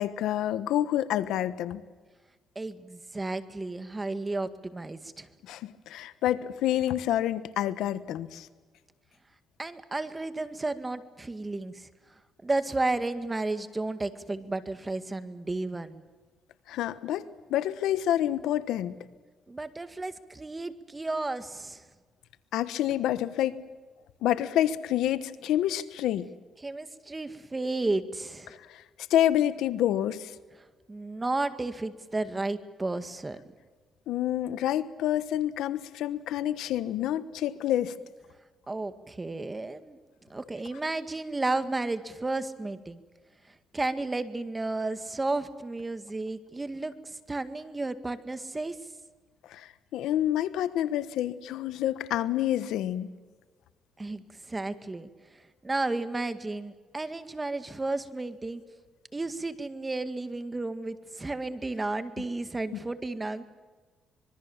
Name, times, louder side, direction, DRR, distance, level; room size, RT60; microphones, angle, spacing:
voice 1, 0.0-1.8 5.5-8.5 16.7-18.9 22.5-23.6 24.2-26.3 28.5-28.8 29.1-30.3 34.1-37.9 49.5-53.1, left 12 dB, 85° left, 14 dB, 1.1 m, -28 dB
voice 2, 2.6-5.3 9.6-11.9 12.4-16.0 19.5-21.8 26.6-28.5 30.9-33.4 38.7-40.0 40.3-43.0 43.7-48.8 54.0-58.6 59.1-63.4, right 2 dB, 20° right, 10 dB, 2.0 m, -33 dB
25.5 x 22.5 x 7.3 m, 1.4 s
cardioid pair, 90°, 0 cm